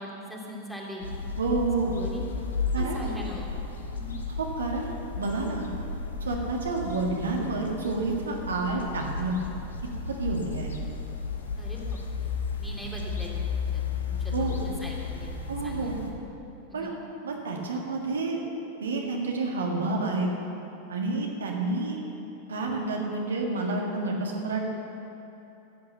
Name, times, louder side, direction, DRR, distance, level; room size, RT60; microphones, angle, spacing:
voice 1, 0.0-1.2 2.0-2.2 2.8-3.5 3.9-4.1 11.6-12.3 12.6-13.3 13.7-16.0 16.7-16.9, left 1 dB, 5° left, -3 dB, 2.5 m, -41 dB
sound 1, 1.0-16.1, left 4 dB, 70° left, 1.3 m, -33 dB
voice 2, 1.4-1.9 2.7-3.1 4.4-5.7 6.2-9.4 10.2-10.7 14.3-14.6 15.5-16.0 16.7-16.9 17.2-18.4 18.8-20.3 20.9-22.0 22.5-24.7, right 3 dB, 70° right, 0 dB, 1.8 m, -29 dB
14.0 x 8.5 x 7.3 m, 3.0 s
figure-of-eight pair, 90°, 0 cm